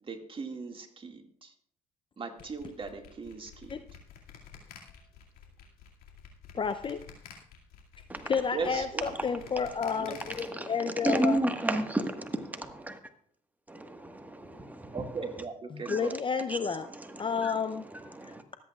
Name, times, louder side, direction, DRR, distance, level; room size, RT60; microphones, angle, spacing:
voice 1, 0.0-1.5 2.2-3.8 8.5-9.0 10.0-10.2 14.9-16.1, right 4 dB, 30° right, 3 dB, 2.0 m, -38 dB
sound 1, 2.4-10.4, left 8 dB, 65° left, 2.3 m, -50 dB
voice 2, 6.5-7.0 8.3-11.4 15.7-16.9 17.2-17.8, left 6 dB, 30° left, 10 dB, 0.6 m, -30 dB
voice 3, 8.1-8.4 9.2-9.5 9.8-13.0 13.7-15.4 15.8-16.2 16.5-18.4, right 1 dB, 10° right, 6 dB, 1.5 m, -34 dB
24.5 x 8.3 x 2.4 m, 0.63 s
hypercardioid pair, 65°, 17 cm